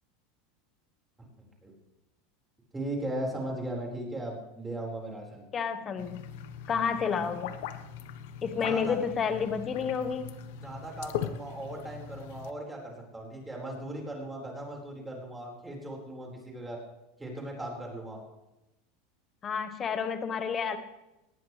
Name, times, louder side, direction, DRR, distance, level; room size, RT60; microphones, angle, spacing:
voice 1, 1.4-1.7 2.7-5.5 8.6-9.0 10.6-16.8 17.2-18.2, right 1 dB, 10° right, -1 dB, 4.7 m, -38 dB
voice 2, 5.5-6.2 6.7-7.6 8.4-10.3 19.4-20.8, left 6 dB, 25° left, 9 dB, 1.2 m, -30 dB
sound 1, 6.0-12.5, left 9 dB, 70° left, 1.2 m, -40 dB
19.0 x 18.5 x 3.3 m, 0.95 s
supercardioid pair, 140°, 0 cm